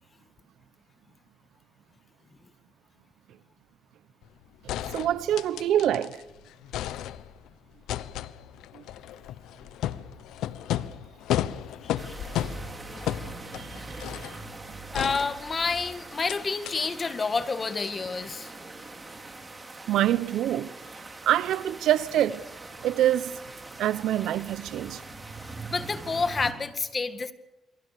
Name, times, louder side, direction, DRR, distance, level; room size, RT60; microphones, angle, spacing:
sound 1, 4.2-4.3 4.7-6.2 6.5-7.5 7.9-14.4 14.9-15.8 16.3-16.4 16.7-16.8, left 12 dB, 90° left, 0.9 m, -33 dB
voice 1, 4.9-6.2 8.7-8.8 13.5-13.8 14.2-14.4 19.9-20.7 21.2-22.4 22.8-23.4 23.8-25.0, right 12 dB, 80° right, 0.9 m, -25 dB
voice 2, 11.8-12.1 13.8-13.9 14.9-18.5 25.7-27.3, left 4 dB, 35° left, 2.0 m, -29 dB
sound 2, 12.0-26.5, right 3 dB, 20° right, 4.5 m, -42 dB
28.5 x 23.5 x 6.8 m
cardioid pair, 90°, 0 cm